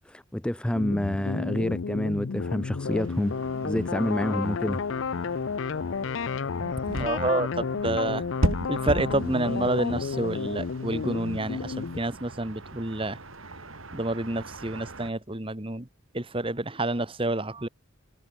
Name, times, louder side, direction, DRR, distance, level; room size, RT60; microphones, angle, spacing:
voice 1, 0.1-3.4 3.6-4.8, left 1 dB, 5° left, 0.3 m, -28 dB
sound 1, 0.7-12.0, left 5 dB, 70° left, 0.5 m, -31 dB
sound 2, 2.9-15.1, right 1 dB, 85° right, 3.8 m, -37 dB
voice 2, 6.9-8.2 8.7-13.2 13.9-15.9 16.1-17.7, right 2 dB, 25° right, 1.6 m, -29 dB
head